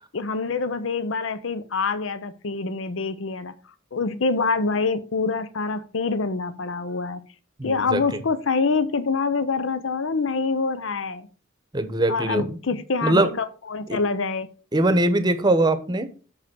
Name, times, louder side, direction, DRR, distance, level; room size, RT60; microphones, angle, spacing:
voice 1, 0.1-3.5 3.9-7.2 7.6-11.3 12.1-14.5, left 4 dB, 75° left, 0.7 m, -26 dB
voice 2, 7.6-8.2 11.7-12.6 13.0-13.3 13.9-14.0 14.7-16.1, right 1 dB, 20° right, 0.9 m, -22 dB
6.7 x 5.4 x 6.0 m
head